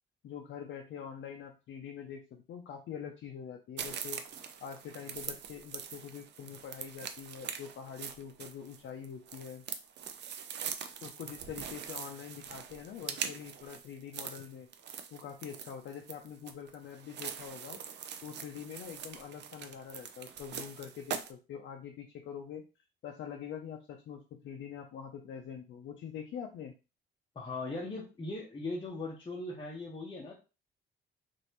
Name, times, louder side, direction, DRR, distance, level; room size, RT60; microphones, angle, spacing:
voice 1, 0.2-4.2 4.6-9.6 11.0-14.7 15.1-17.8 18.2-22.6 23.0-26.7, left 8 dB, 65° left, 3 dB, 0.5 m, -44 dB
sound 1, 3.8-21.3, right 8 dB, 60° right, 0.5 m, -43 dB
voice 2, 27.3-30.3, left 2 dB, 25° left, -3 dB, 0.8 m, -39 dB
3.1 x 2.6 x 2.9 m, 0.32 s
cardioid pair, 90°, 20 cm